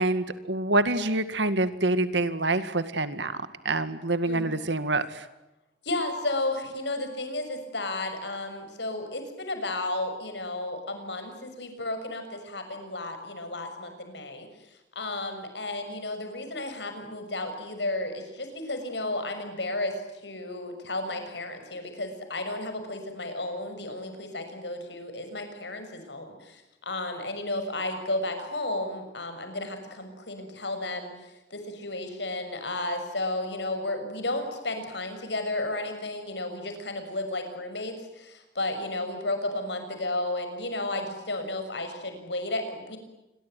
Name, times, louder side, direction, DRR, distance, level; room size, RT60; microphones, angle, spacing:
voice 1, 0.0-5.3, right 2 dB, 85° right, 11 dB, 2.1 m, -26 dB
voice 2, 5.8-14.5 14.9-20.0 20.2-43.0, left 2 dB, 75° left, 7 dB, 6.6 m, -33 dB
27.5 x 22.5 x 9.4 m, 0.97 s
head